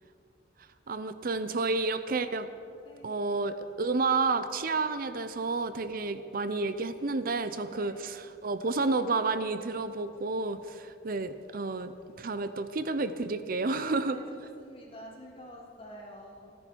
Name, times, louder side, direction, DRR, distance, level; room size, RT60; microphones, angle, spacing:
voice 1, 0.9-2.5 3.0-11.9 12.2-14.2, right 3 dB, 55° right, 11 dB, 0.6 m, -30 dB
voice 2, 2.8-3.1 7.7-8.0 13.7-16.6, equal, 35° left, -2 dB, 3.1 m, -48 dB
28.0 x 10.0 x 4.6 m, 2.5 s
head